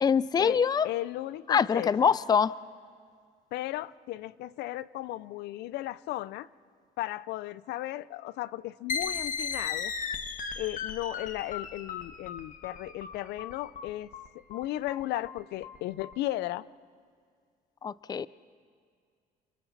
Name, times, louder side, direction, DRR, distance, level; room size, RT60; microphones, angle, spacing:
voice 1, 0.0-0.9 1.5-2.5 17.8-18.3, left 6 dB, 25° left, 18 dB, 0.4 m, -24 dB
voice 2, 0.8-2.1 3.5-6.5 7.0-9.9 10.6-14.1 14.5-16.7, left 15 dB, 80° left, 18 dB, 0.6 m, -35 dB
sound 1, 8.9-16.1, left 6 dB, 50° left, 1.4 m, -36 dB
29.5 x 25.5 x 4.1 m, 2.1 s
cardioid pair, 110°, 17 cm